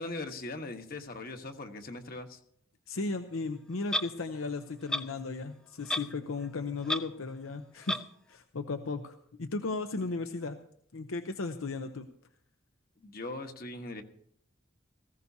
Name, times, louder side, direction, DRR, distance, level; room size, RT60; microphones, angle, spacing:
voice 1, 0.0-2.4 13.0-14.0, left 2 dB, 45° left, 5 dB, 1.2 m, -40 dB
voice 2, 2.9-8.0 8.3-10.6 10.9-12.1, left 3 dB, 85° left, 7 dB, 0.8 m, -35 dB
Clock, 3.9-4.1 4.9-5.0 5.9-6.1 6.4-6.5 6.8-7.0 7.9-8.0, left 1 dB, 5° left, 0.4 m, -30 dB
18.5 x 16.0 x 2.8 m, 0.65 s
head